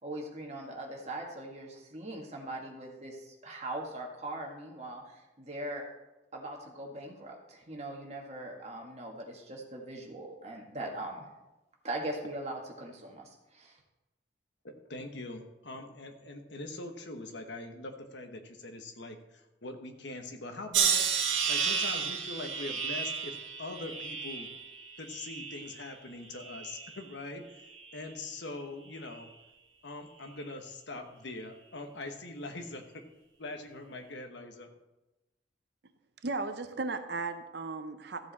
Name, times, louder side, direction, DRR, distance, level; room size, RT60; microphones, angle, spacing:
voice 1, 0.0-5.9 6.3-11.2 11.8-13.8, right 1 dB, 35° right, 0 dB, 1.8 m, -40 dB
voice 2, 14.6-21.0 21.5-24.5 25.0-27.6 27.9-29.3 29.8-33.0 33.4-34.7, left 2 dB, 70° left, 5 dB, 1.2 m, -42 dB
sound 1, 20.7-25.9 26.3-27.0 27.7-28.1, right 6 dB, 90° right, 1.5 m, -32 dB
voice 3, 36.2-38.3, right 3 dB, 60° right, 9 dB, 0.7 m, -36 dB
14.0 x 7.4 x 4.2 m, 1.0 s
head